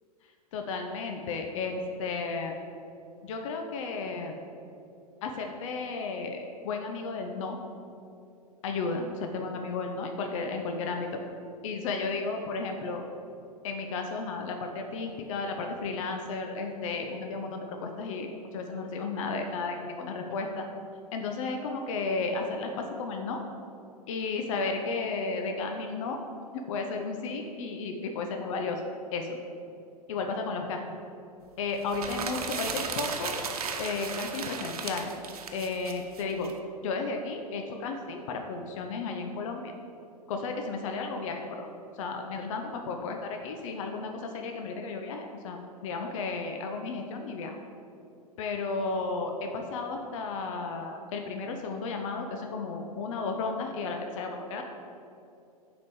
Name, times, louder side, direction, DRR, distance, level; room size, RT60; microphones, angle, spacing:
voice 1, 0.5-2.5 3.2-4.4 5.2-7.6 8.6-11.2 11.6-13.0 13.6-20.6 21.1-23.4 24.1-26.2 26.5-28.8 29.1-29.4 30.1-30.8 31.6-33.4 33.8-35.1 35.5-36.5 36.8-39.7 40.3-41.7 41.9-47.6 48.4-54.6, left 4 dB, 55° left, 4 dB, 0.9 m, -33 dB
sound 1, 31.8-36.5, right 5 dB, 70° right, 1.0 m, -35 dB
7.5 x 5.3 x 7.0 m, 2.6 s
figure-of-eight pair, 100°, 20 cm